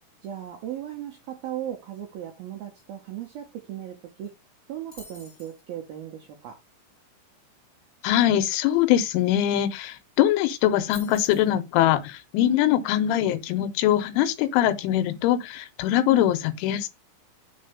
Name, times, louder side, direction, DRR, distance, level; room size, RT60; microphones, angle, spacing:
voice 1, 0.2-4.3 4.7-6.6, right 11 dB, 80° right, 2.1 m, -37 dB
sound 1, 4.9-5.6 9.5-9.6 9.8-10.2 10.9-11.5, left 1 dB, 5° right, 1.5 m, -47 dB
voice 2, 8.0-16.9, left 12 dB, 90° left, 3.2 m, -22 dB
6.6 x 4.1 x 5.2 m
omnidirectional pair, 5.6 m